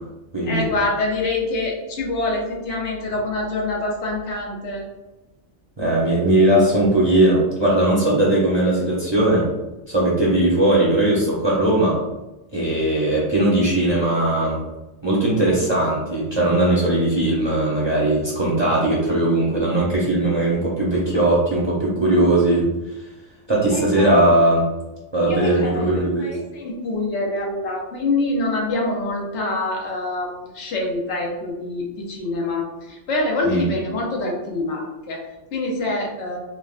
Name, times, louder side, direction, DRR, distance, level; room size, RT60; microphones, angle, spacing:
voice 1, 0.4-4.8 23.7-24.1 25.3-36.4, left 2 dB, 70° left, -1 dB, 1.0 m, -25 dB
voice 2, 5.8-9.5 9.9-12.0 12.5-14.6 15.0-22.7 23.5-24.6 25.1-26.3 33.4-33.7, right 1 dB, 30° right, -7 dB, 0.6 m, -19 dB
3.4 x 2.1 x 2.4 m, 1.0 s
omnidirectional pair, 1.2 m